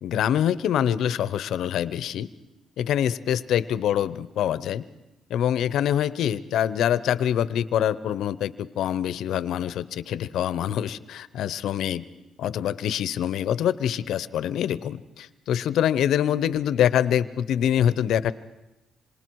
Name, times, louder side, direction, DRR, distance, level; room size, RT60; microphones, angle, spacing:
voice 1, 0.0-2.3 2.8-4.8 5.3-12.1 12.4-18.3, left 10 dB, 75° left, 17 dB, 0.7 m, -25 dB
27.0 x 26.0 x 4.7 m, 1.0 s
cardioid pair, 90°, 0 cm